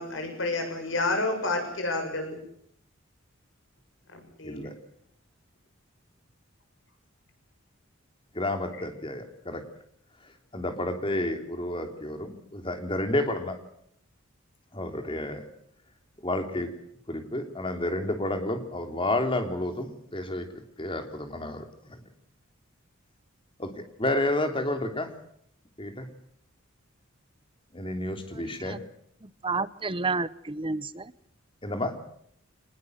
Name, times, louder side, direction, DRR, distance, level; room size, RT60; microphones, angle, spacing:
voice 1, 0.0-2.4 4.1-4.7, left 2 dB, 65° left, 5 dB, 7.2 m, -30 dB
voice 2, 8.3-9.6 10.5-13.6 14.7-15.4 16.2-16.7 17.1-20.4 20.8-22.0 23.6-23.7 24.0-25.1 25.8-26.1 27.7-28.8 31.6-32.0, left 1 dB, 25° left, 6 dB, 3.3 m, -30 dB
voice 3, 28.3-28.8 29.2-31.1, right 3 dB, 25° right, 16 dB, 0.9 m, -31 dB
24.5 x 20.5 x 7.9 m, 0.69 s
head